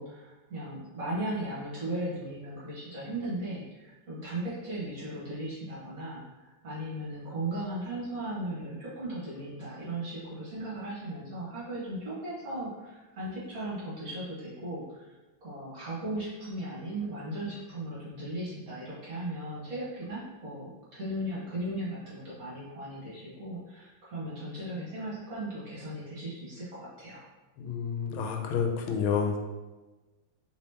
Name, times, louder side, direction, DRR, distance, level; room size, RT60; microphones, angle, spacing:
voice 1, 0.0-15.1 15.4-27.3, right 1 dB, 50° right, -7 dB, 1.3 m, -37 dB
voice 2, 27.6-29.4, left 6 dB, 85° left, 3 dB, 1.4 m, -29 dB
3.3 x 2.9 x 3.3 m, 1.2 s
omnidirectional pair, 2.2 m